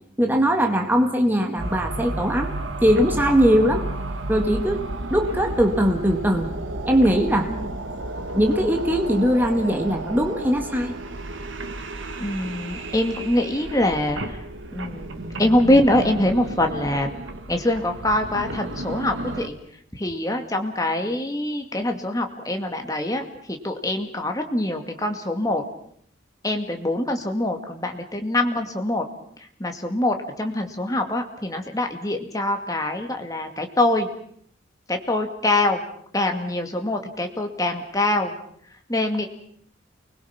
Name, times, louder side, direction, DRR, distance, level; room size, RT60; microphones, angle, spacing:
voice 1, 0.2-2.6 2.8-3.9 4.3-6.5 6.8-7.5 8.3-10.9, equal, 10° right, 3 dB, 1.9 m, -20 dB
sound 1, 1.6-19.5, right 2 dB, 70° right, 1.7 m, -32 dB
voice 2, 12.2-14.4 14.7-17.2 17.5-19.6 19.9-25.6 26.4-29.0 29.6-34.1 34.9-35.8 36.1-38.4 38.9-39.3, left 1 dB, 15° left, 4 dB, 2.1 m, -24 dB
29.0 x 21.0 x 5.9 m, 0.66 s
head